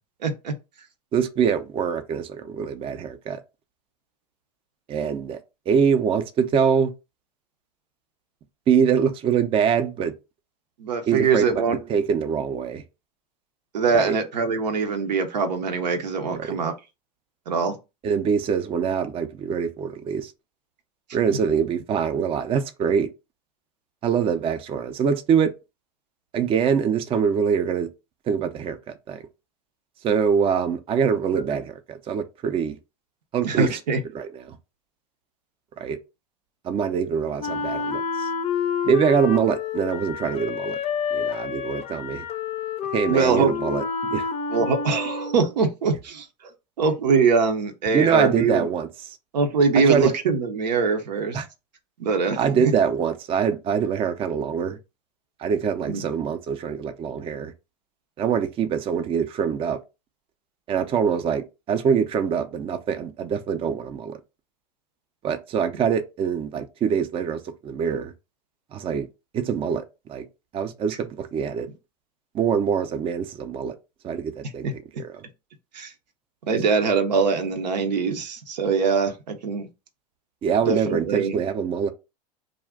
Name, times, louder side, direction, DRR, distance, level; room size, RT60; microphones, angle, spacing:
voice 1, 0.2-0.5 10.8-11.8 13.7-16.7 17.5-17.7 21.3-21.4 31.5-31.6 33.4-34.0 43.1-43.5 44.5-46.5 46.8-48.7 49.3-51.4 52.0-52.7 55.9-56.0 74.6-74.7 75.7-75.9 76.4-79.7 80.7-81.4, right 5 dB, 85° right, 0.6 m, -23 dB
voice 2, 1.1-3.4 4.9-5.4 5.7-6.9 8.7-10.1 11.1-11.5 11.9-12.8 13.9-14.2 16.4-16.6 18.0-20.3 21.1-23.1 24.0-25.5 26.3-27.9 28.3-29.2 30.0-32.8 33.3-33.7 34.1-34.6 35.8-36.0 36.6-38.3 38.8-40.8 41.1-42.2 42.9-43.8 44.1-44.3 47.9-48.9 49.7-50.1 51.3-51.5 52.4-54.8 55.4-57.5 58.2-59.8 60.7-64.2 65.2-68.1 68.7-69.1 69.3-69.8 70.1-70.2 70.5-71.7 72.3-73.8 74.0-75.1 80.4-81.9, right 7 dB, 25° right, 0.4 m, -24 dB
Wind instrument woodwind instrument, 37.4-45.6, left 6 dB, 30° left, 0.5 m, -29 dB
2.4 x 2.1 x 3.4 m
hypercardioid pair, 95°, 21 cm